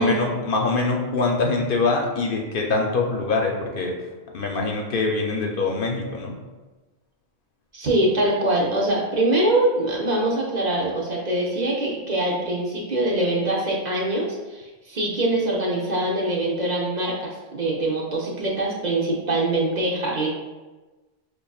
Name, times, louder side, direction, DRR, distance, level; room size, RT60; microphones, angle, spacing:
voice 1, 0.0-3.9 4.3-6.4, left 3 dB, 65° left, 1 dB, 0.7 m, -24 dB
voice 2, 7.7-20.3, right 1 dB, 50° right, -3 dB, 0.7 m, -23 dB
5.1 x 2.5 x 2.3 m, 1.2 s
omnidirectional pair, 1.1 m